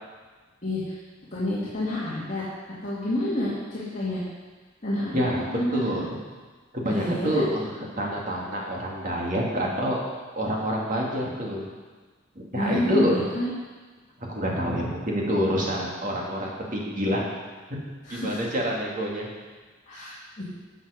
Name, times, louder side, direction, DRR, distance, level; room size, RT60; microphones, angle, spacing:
voice 1, 0.6-1.0 1.3-2.5 2.8-4.2 4.8-5.2 5.5-6.0 6.9-7.4 12.5-13.5 18.0-18.4 19.9-20.5, left 1 dB, 40° left, -9 dB, 2.5 m, -29 dB
voice 2, 5.1-6.1 6.7-7.7 8.0-10.0 10.4-11.6 12.4-13.2 14.3-17.3 17.7-17.8 18.1-19.3, equal, 45° right, -3 dB, 2.5 m, -27 dB
13.5 x 7.9 x 5.1 m, 1.4 s
head